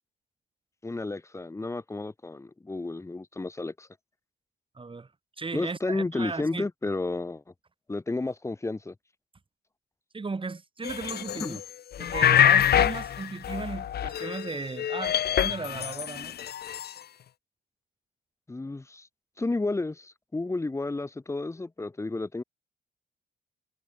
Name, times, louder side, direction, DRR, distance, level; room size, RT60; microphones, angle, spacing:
voice 1, 0.8-3.9 5.5-7.4 7.9-8.9 11.4-11.6 18.5-19.1 19.4-22.4, left 2 dB, 15° left, 0.9 m, -32 dB
voice 2, 4.8-5.1 5.4-6.7 10.1-11.6 12.0-16.4, right 4 dB, 25° right, 5.2 m, -36 dB
sound 1, 10.8-11.6 11.9-14.5 14.8-16.9, left 10 dB, 55° left, 0.8 m, -25 dB
cardioid pair, 90°, 20 cm